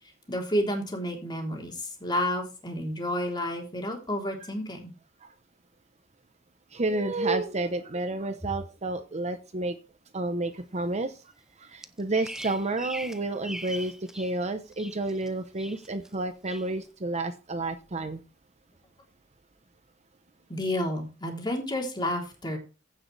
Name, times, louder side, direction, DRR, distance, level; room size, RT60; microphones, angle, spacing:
voice 1, 0.3-4.9 20.5-22.6, left 1 dB, 20° left, 1 dB, 3.5 m, -30 dB
voice 2, 6.7-9.8 10.1-11.1 11.6-18.2, right 2 dB, 35° right, 9 dB, 0.9 m, -30 dB
Bird vocalization bird call bird song, 11.8-14.4 14.7-15.3 15.6-16.1 16.5-16.7, right 1 dB, 5° right, 0.7 m, -41 dB
15.5 x 6.4 x 3.4 m, 0.31 s
head